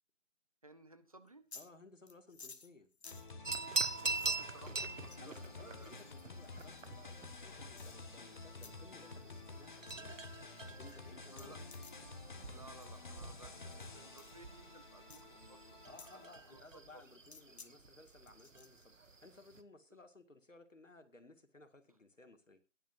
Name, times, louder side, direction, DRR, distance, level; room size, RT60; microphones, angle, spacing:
voice 1, 0.6-1.5 4.0-5.9 11.3-11.6 12.5-17.0 19.9-20.0, right 2 dB, 30° right, 10 dB, 0.8 m, -58 dB
sound 1, 1.3-1.7 2.1-4.5 5.1-5.4 5.8-6.9 7.8-8.0 8.6-8.7 9.1-9.4 9.6-10.0 10.4-10.5 10.9-11.0 11.3-12.0 12.7-12.9 13.7-13.9 14.2-14.3 15.1-15.2 16.0-16.2 17.2-17.7 18.1-18.8, left 4 dB, 60° left, 1.3 m, -56 dB
voice 2, 1.5-2.9 5.2-11.6 15.8-22.6, left 3 dB, 85° left, 8 dB, 2.2 m, -59 dB
sound 2, 3.0-16.6, left 3 dB, 40° left, 1.4 m, -51 dB
sound 3, 3.4-19.6, right 3 dB, 85° right, 1.4 m, -44 dB
17.0 x 10.5 x 2.6 m, 0.29 s
figure-of-eight pair, 160°, 37 cm